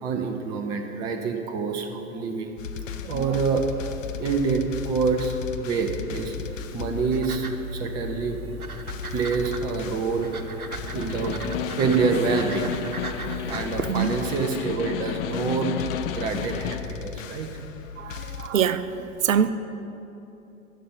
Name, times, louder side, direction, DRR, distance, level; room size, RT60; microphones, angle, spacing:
voice 1, 0.0-2.5 3.1-3.7 4.2-6.4 6.7-7.4 7.7-8.4 9.1-10.3 10.9-11.4 11.8-12.7 13.5-17.5, right 5 dB, 10° right, 4 dB, 0.4 m, -26 dB
sound 1, 2.6-18.5, left 8 dB, 60° left, 0.9 m, -37 dB
sound 2, 6.1-14.5, right 3 dB, 85° right, 0.9 m, -37 dB
Snare drum, 10.8-16.9, left 10 dB, 45° left, 0.5 m, -32 dB
voice 2, 18.0-19.5, right 8 dB, 65° right, 13 dB, 0.7 m, -25 dB
11.5 x 6.8 x 9.5 m, 3.0 s
figure-of-eight pair, 105°, 43 cm